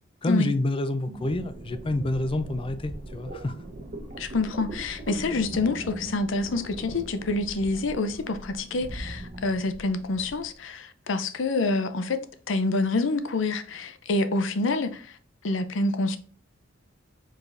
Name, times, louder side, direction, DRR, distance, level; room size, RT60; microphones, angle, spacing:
voice 1, 0.2-3.5, left 1 dB, 25° left, 0.4 m, -28 dB
sound 1, 1.1-10.5, right 1 dB, 40° right, 1.0 m, -40 dB
voice 2, 4.2-15.1 15.4-16.2, left 3 dB, 70° left, 0.6 m, -27 dB
4.9 x 4.0 x 2.5 m
head